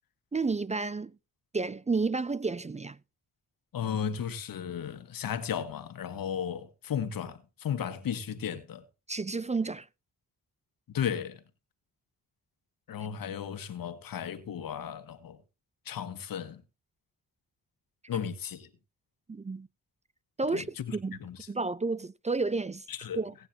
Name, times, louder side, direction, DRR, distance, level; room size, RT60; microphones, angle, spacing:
voice 1, 0.3-1.1 1.5-3.0 9.1-9.9 19.3-19.7 20.4-20.7 20.9-21.2 21.5-22.8 23.2-23.3, right 3 dB, 20° right, 0.5 m, -31 dB
voice 2, 3.7-8.8 10.9-11.4 12.9-15.4 15.9-16.6 18.1-18.7 20.5-21.4 22.9-23.2, left 8 dB, 80° left, 1.7 m, -35 dB
18.0 x 9.6 x 2.9 m
cardioid pair, 65°, 34 cm